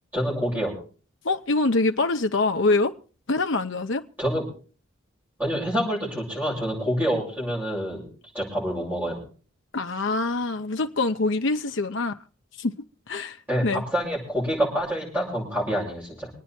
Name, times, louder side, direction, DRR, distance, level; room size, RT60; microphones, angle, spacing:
voice 1, 0.1-0.7 4.2-4.4 5.4-8.1 8.3-9.2 13.5-16.3, equal, 10° right, 7.8 m, -27 dB
voice 2, 1.2-2.9 3.3-4.0 9.7-12.2 12.6-13.4 13.6-13.8, left 3 dB, 65° left, 0.8 m, -24 dB
25.0 x 9.4 x 4.4 m
head